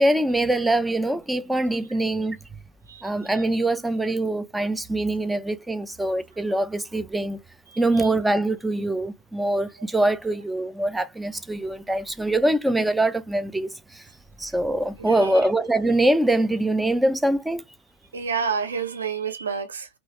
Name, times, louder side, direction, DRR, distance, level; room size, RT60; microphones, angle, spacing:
voice 1, 0.0-2.4 3.0-7.4 7.8-14.0 14.4-17.6, right 1 dB, 5° right, 0.4 m, -23 dB
voice 2, 7.7-8.1 15.0-15.4 18.1-19.9, right 6 dB, 70° right, 0.7 m, -29 dB
3.0 x 2.3 x 2.9 m
figure-of-eight pair, 90°, 0 cm